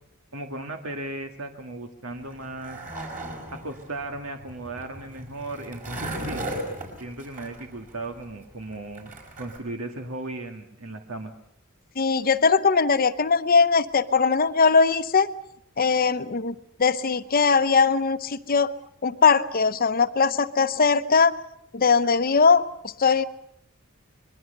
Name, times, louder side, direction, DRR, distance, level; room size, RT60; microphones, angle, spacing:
voice 1, 0.3-2.8 3.5-6.5 7.0-9.1 9.4-11.3, right 2 dB, 75° right, 4 dB, 1.9 m, -36 dB
Skateboard, 2.1-9.6, right 1 dB, 40° right, 5.1 m, -37 dB
voice 2, 12.0-15.3 15.8-18.7 19.0-21.3 21.7-23.2, left 5 dB, 45° left, 12 dB, 0.9 m, -20 dB
25.0 x 21.5 x 6.7 m, 0.76 s
head